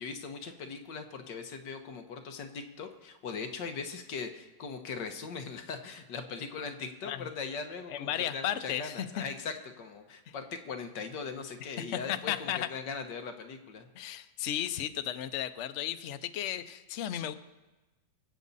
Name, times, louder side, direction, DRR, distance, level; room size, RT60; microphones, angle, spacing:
voice 1, 0.0-13.9, left 5 dB, 70° left, 6 dB, 1.7 m, -40 dB
voice 2, 7.9-9.2 10.3-10.4 11.6-12.7 14.0-17.3, left 11 dB, 85° left, 10 dB, 0.6 m, -34 dB
23.0 x 8.4 x 4.1 m, 1.1 s
omnidirectional pair, 2.1 m